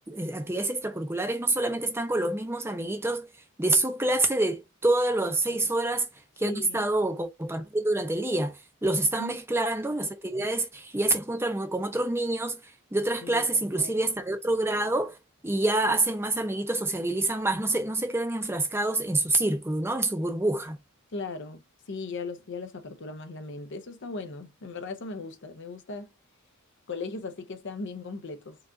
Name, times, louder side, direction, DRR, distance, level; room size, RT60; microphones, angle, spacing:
voice 1, 0.1-3.3 3.6-6.1 6.4-12.6 12.9-15.2 15.4-20.8, right 2 dB, 10° right, 0.6 m, -27 dB
voice 2, 6.4-6.8 9.0-9.4 13.2-13.9 21.1-26.1 26.9-28.6, left 3 dB, 55° left, 0.6 m, -38 dB
4.7 x 2.4 x 2.6 m
head